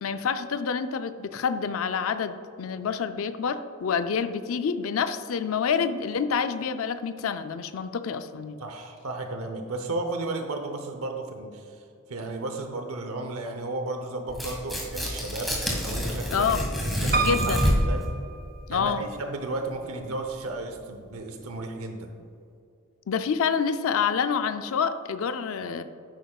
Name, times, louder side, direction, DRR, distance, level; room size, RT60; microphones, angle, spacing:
voice 1, 0.0-8.6 16.3-16.6 17.2-17.6 18.7-19.1 23.1-25.8, left 6 dB, 70° left, 10 dB, 0.4 m, -27 dB
voice 2, 8.6-11.7 12.1-15.5 15.8-16.5 17.0-18.0 18.7-22.1, right 2 dB, 85° right, 5 dB, 0.8 m, -33 dB
Tearing, 14.3-18.0, equal, ahead, 1.7 m, -27 dB
Piano, 17.1-19.1 19.7-20.4 20.8-20.9 21.1-21.2, right 5 dB, 45° right, 0.6 m, -30 dB
10.0 x 8.7 x 2.3 m, 2.5 s
head